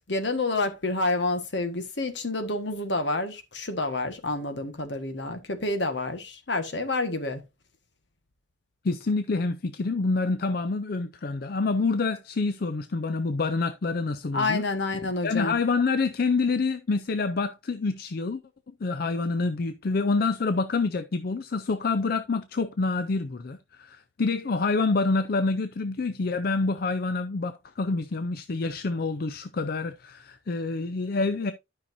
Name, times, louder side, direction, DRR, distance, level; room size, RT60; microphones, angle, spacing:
voice 1, 0.1-7.4 14.3-15.6, left 2 dB, 70° left, 1.4 m, -28 dB
voice 2, 8.8-14.6 15.2-18.4 18.7-31.5, left 3 dB, 55° left, 0.5 m, -27 dB
12.0 x 5.7 x 2.6 m
head